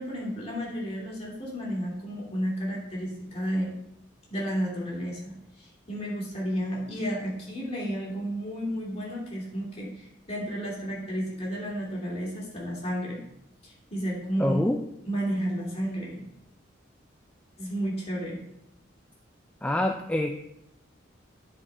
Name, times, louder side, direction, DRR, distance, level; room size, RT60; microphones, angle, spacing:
voice 1, 0.0-3.7 4.3-13.2 13.6-14.6 15.1-16.2 17.6-18.4, equal, 35° left, -4 dB, 2.5 m, -32 dB
voice 2, 14.4-14.8 19.6-20.3, left 1 dB, 5° left, 3 dB, 0.3 m, -25 dB
10.0 x 4.4 x 4.3 m, 0.81 s
head